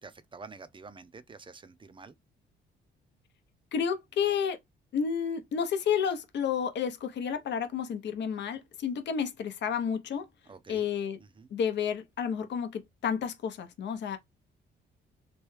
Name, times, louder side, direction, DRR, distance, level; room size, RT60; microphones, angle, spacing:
voice 1, 0.0-2.1 10.5-10.9 11.2-11.5, right 4 dB, 25° right, 0.5 m, -48 dB
voice 2, 3.7-4.6 4.9-10.2 10.7-11.2 11.5-14.2, left 7 dB, 60° left, 0.7 m, -31 dB
3.1 x 2.2 x 3.2 m
cardioid pair, 90°, 20 cm